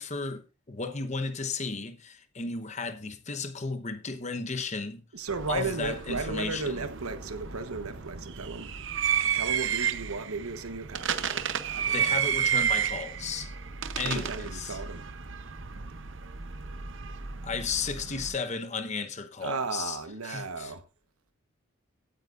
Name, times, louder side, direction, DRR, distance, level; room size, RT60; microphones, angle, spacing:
voice 1, 0.0-5.0 5.5-6.8 11.8-13.5 14.0-14.8 17.4-20.7, left 4 dB, 30° left, 1.0 m, -34 dB
voice 2, 5.1-8.7 9.4-12.1 14.0-15.1 19.4-20.8, right 4 dB, 85° right, 1.2 m, -35 dB
sound 1, 5.3-18.3, right 8 dB, 55° right, 0.8 m, -32 dB
16.5 x 9.1 x 2.5 m
head